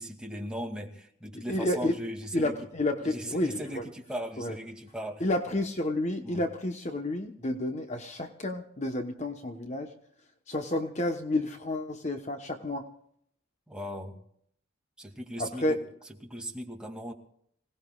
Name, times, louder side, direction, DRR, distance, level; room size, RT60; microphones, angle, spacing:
voice 1, 0.0-2.6 3.0-5.3 6.2-6.5 13.7-14.2 15.0-15.8 16.2-17.1, equal, 5° right, 0 dB, 2.4 m, -38 dB
voice 2, 1.5-2.0 2.3-3.8 4.4-4.6 5.2-9.9 10.5-12.9 15.4-15.8, left 1 dB, 35° left, 5 dB, 1.1 m, -30 dB
27.0 x 18.0 x 2.4 m, 0.68 s
head